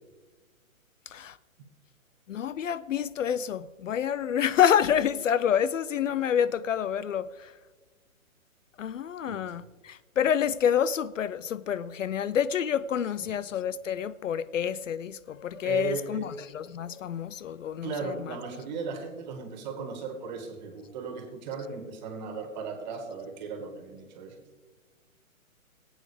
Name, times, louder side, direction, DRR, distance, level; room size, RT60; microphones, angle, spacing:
voice 1, 1.1-1.4 2.3-7.5 8.8-18.4, left 9 dB, 65° left, 0.5 m, -28 dB
voice 2, 15.6-16.2 17.8-24.4, right 5 dB, 30° right, 2.0 m, -37 dB
19.5 x 8.7 x 3.4 m
hypercardioid pair, 150°, 42 cm